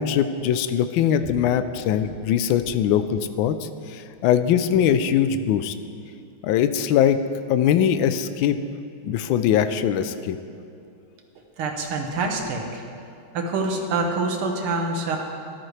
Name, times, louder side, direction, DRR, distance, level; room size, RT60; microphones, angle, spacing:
voice 1, 0.0-5.7 6.4-7.2 7.5-8.6 9.0-10.4, left 9 dB, 75° left, 11 dB, 1.3 m, -21 dB
voice 2, 11.6-12.8 13.3-15.2, right 3 dB, 80° right, 2 dB, 2.0 m, -26 dB
14.0 x 12.0 x 3.3 m, 2.5 s
omnidirectional pair, 2.4 m